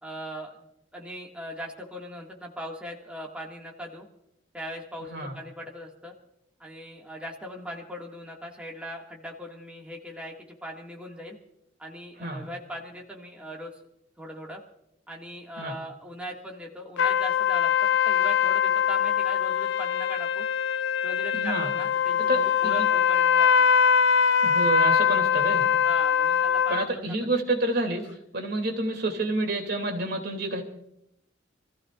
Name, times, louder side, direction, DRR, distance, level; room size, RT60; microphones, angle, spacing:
voice 1, 0.0-0.7 0.9-4.1 4.5-6.1 6.6-11.4 11.8-13.7 14.2-14.6 15.1-20.5 21.0-23.7 25.8-27.3, equal, 5° right, -2 dB, 2.0 m, -40 dB
sound 1, 17.0-26.9, left 7 dB, 70° left, 0.4 m, -22 dB
voice 2, 21.3-21.7 22.3-22.9 24.4-25.7 26.7-28.1 28.3-30.6, right 2 dB, 60° right, 4 dB, 2.7 m, -29 dB
27.5 x 15.0 x 2.5 m, 0.77 s
head